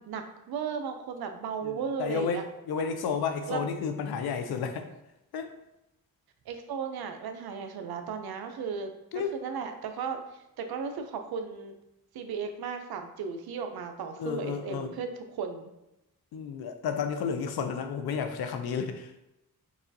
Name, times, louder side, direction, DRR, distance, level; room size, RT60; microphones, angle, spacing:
voice 1, 0.0-2.4 3.5-3.8 6.5-11.7 12.1-15.7, right 6 dB, 80° right, 6 dB, 0.5 m, -35 dB
voice 2, 1.6-4.9 5.3-5.5 9.1-9.3 14.2-14.9 16.3-19.1, left 6 dB, 80° left, 7 dB, 0.5 m, -32 dB
4.8 x 2.3 x 2.6 m, 0.89 s
cardioid pair, 65°, 37 cm